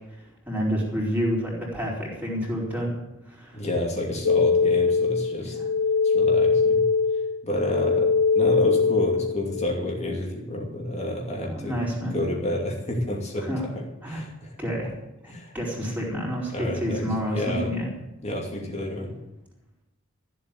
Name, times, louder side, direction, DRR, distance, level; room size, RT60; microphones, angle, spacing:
voice 1, 0.4-3.0 3.2-3.6 5.4-5.6 11.4-12.2 13.4-13.7 14.0-14.2 14.6-14.9 15.2-17.9, equal, 10° right, -4 dB, 4.5 m, -29 dB
voice 2, 3.5-5.6 6.0-6.8 7.4-13.5 13.8-14.5 15.3-15.5 16.5-17.7 18.2-19.1, left 1 dB, 30° left, 0 dB, 2.7 m, -30 dB
sound 1, 4.2-9.7, left 4 dB, 80° left, 0.5 m, -22 dB
15.0 x 7.8 x 9.6 m, 0.93 s
head